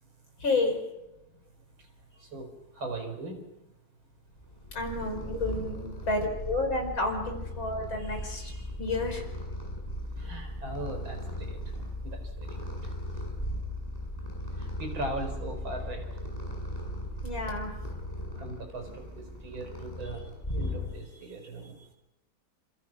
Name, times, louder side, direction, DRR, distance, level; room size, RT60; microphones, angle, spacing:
voice 1, 0.4-0.8 4.7-9.2 17.2-17.7, left 2 dB, 70° left, 4 dB, 5.8 m, -30 dB
voice 2, 2.7-3.4 8.8-8.9 10.2-11.6 12.0-12.9 14.6-16.1 18.3-21.8, right 2 dB, 75° right, 5 dB, 5.2 m, -39 dB
Purr, 4.4-21.2, left 1 dB, 20° left, 7.3 m, -37 dB
28.5 x 27.5 x 6.1 m, 0.93 s
omnidirectional pair, 2.2 m